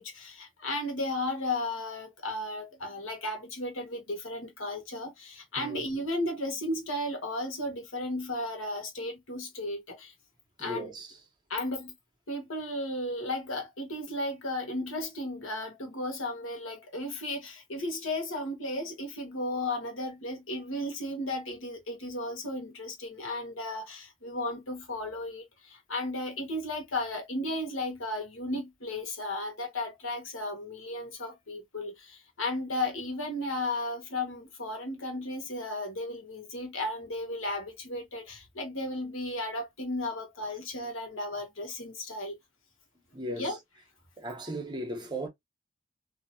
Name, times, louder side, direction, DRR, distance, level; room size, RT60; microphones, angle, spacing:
voice 1, 0.0-10.1 10.6-10.9 11.5-11.9 12.3-42.3 43.3-43.6, left 1 dB, 85° left, 1.2 m, -34 dB
voice 2, 10.6-11.2 43.1-43.6 44.2-45.3, right 1 dB, 20° right, 0.9 m, -37 dB
2.9 x 2.7 x 2.7 m
head